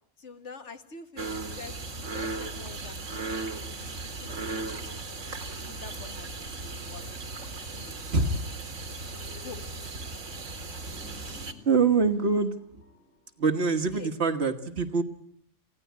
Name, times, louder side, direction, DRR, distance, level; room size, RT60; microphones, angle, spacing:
voice 1, 0.2-3.3 3.8-5.0 5.6-7.1 7.4-8.0 9.4-9.9 13.9-14.1, left 5 dB, 65° left, 8 dB, 2.0 m, -47 dB
sound 1, 1.2-11.5, right 3 dB, 70° right, 2.3 m, -37 dB
sound 2, 4.5-14.1, left 2 dB, 85° left, 4.9 m, -57 dB
voice 2, 8.1-8.5 11.1-12.6 13.4-15.0, right 4 dB, 55° right, 8 dB, 1.7 m, -25 dB
27.5 x 17.0 x 9.4 m, 0.68 s
omnidirectional pair, 1.3 m